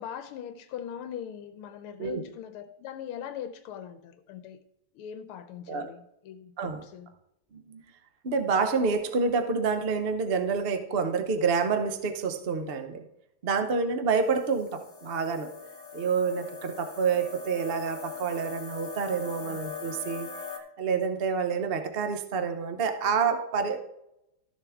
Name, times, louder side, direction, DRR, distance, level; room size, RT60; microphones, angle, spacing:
voice 1, 0.0-4.6 4.9-7.1 19.4-19.6, left 9 dB, 85° left, 1.6 m, -41 dB
voice 2, 7.5-7.8 8.2-13.0 13.4-15.5 15.9-20.3 20.8-23.8, right 5 dB, 60° right, 0.6 m, -28 dB
sound 1, 14.1-20.6, left 5 dB, 25° left, 0.9 m, -41 dB
13.0 x 6.9 x 3.6 m
omnidirectional pair, 2.4 m